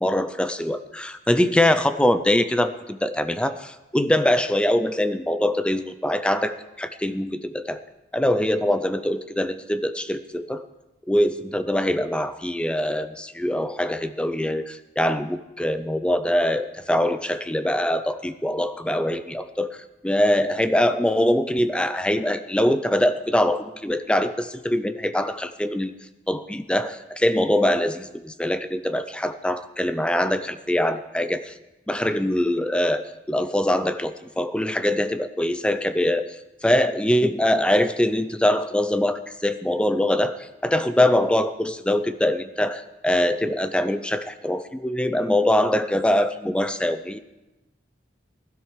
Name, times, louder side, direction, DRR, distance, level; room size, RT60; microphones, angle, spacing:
voice 1, 0.0-7.8 8.1-10.6 11.1-25.9 26.3-31.5 31.9-47.2, left 1 dB, 5° left, 11 dB, 0.4 m, -23 dB
20.0 x 12.5 x 3.2 m, 1.0 s
head